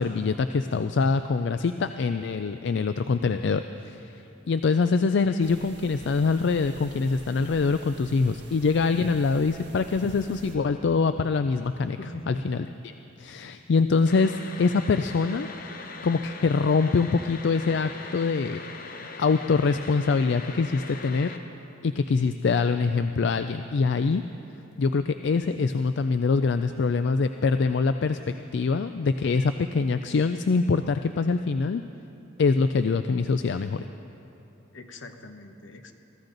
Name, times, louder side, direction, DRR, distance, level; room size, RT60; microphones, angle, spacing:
voice 1, 0.0-12.0 12.3-12.6 12.8-15.5 16.0-18.6 19.2-21.3 21.8-24.2 24.8-28.2 28.5-31.8 32.4-33.9, left 4 dB, 65° left, 9 dB, 0.4 m, -24 dB
sound 1, 5.4-10.6, right 2 dB, 60° right, 1.5 m, -48 dB
voice 2, 12.0-12.5 34.7-35.9, left 1 dB, 80° left, 6 dB, 1.1 m, -41 dB
sound 2, 14.1-21.4, left 4 dB, 50° left, 1.0 m, -41 dB
23.5 x 14.5 x 3.9 m, 2.9 s
head